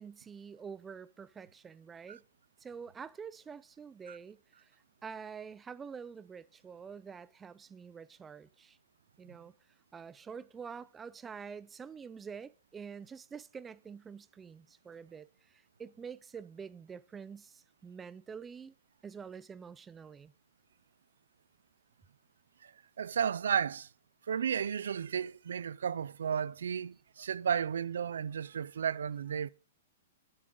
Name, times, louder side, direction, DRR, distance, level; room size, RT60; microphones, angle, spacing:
voice 1, 0.0-2.2 2.6-4.7 5.0-8.8 9.2-9.5 9.9-18.7 19.0-20.3, right 6 dB, 10° right, 0.4 m, -47 dB
voice 2, 23.0-23.9 24.3-29.5, right 7 dB, 85° right, 0.5 m, -33 dB
11.5 x 8.8 x 3.8 m
hypercardioid pair, 155°, 0 cm